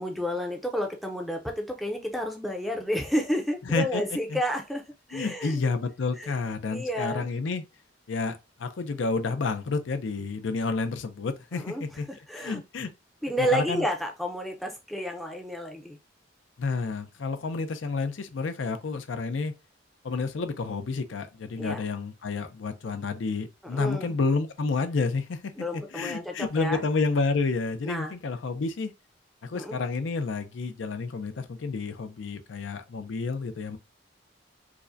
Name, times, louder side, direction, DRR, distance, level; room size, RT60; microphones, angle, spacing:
voice 1, 0.0-4.8 5.1-5.6 6.2-6.3 6.7-7.3 11.5-12.6 13.2-16.0 21.6-21.8 23.6-24.1 25.6-26.8 27.8-28.1 29.5-29.8, equal, ahead, 0.5 m, -31 dB
voice 2, 3.7-4.0 4.3-4.4 5.1-7.6 8.1-12.1 12.3-12.9 13.4-13.9 16.6-19.5 20.0-25.5 25.9-28.9 29.4-33.8, left 4 dB, 80° left, 0.5 m, -30 dB
4.8 x 2.1 x 2.6 m
head